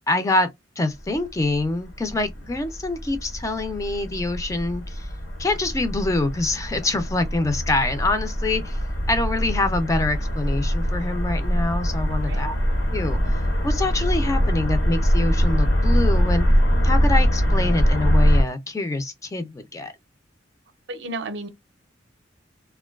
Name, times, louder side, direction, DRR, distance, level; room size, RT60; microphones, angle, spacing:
voice 1, 0.1-0.5 0.8-5.1 5.4-8.8 9.1-12.6 12.9-13.2 13.6-16.5 16.8-19.9, left 2 dB, 15° left, 0.3 m, -25 dB
sound 1, 1.0-18.4, equal, 80° left, 1.1 m, -23 dB
voice 2, 12.1-12.4 20.9-21.5, right 2 dB, 65° right, 0.5 m, -33 dB
2.5 x 2.2 x 2.2 m
head